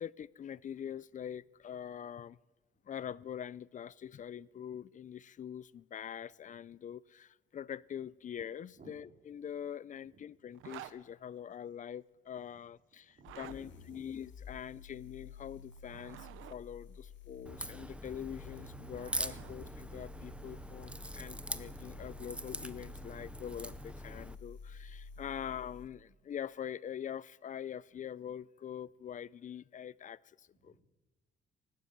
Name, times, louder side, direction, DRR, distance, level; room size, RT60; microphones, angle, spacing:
voice 1, 0.0-2.4 2.8-30.7, left 9 dB, 40° left, 0.5 m, -44 dB
Zipper (clothing), 10.5-11.0 13.1-13.6 15.7-16.6 18.4-19.5, right 13 dB, 90° right, 0.8 m, -50 dB
voice 2, 13.1-14.1 25.2-25.3 30.5-30.8, right 2 dB, 45° right, 4.2 m, -59 dB
sound 1, 13.3-25.9, left 4 dB, 70° left, 1.6 m, -51 dB
Crack, 17.5-24.4, right 1 dB, 5° right, 0.7 m, -43 dB
16.0 x 12.5 x 6.6 m
cardioid pair, 90°, 20 cm